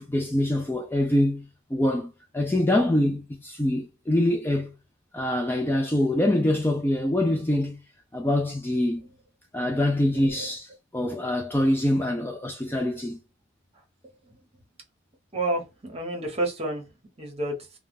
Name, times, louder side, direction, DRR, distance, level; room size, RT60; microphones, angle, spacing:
voice 1, 0.0-4.7 5.1-7.8 8.1-9.1 9.5-13.2, left 1 dB, 10° left, 0.4 m, -25 dB
voice 2, 15.3-16.9 17.2-17.5, right 2 dB, 30° right, 1.0 m, -30 dB
2.3 x 2.3 x 3.3 m
head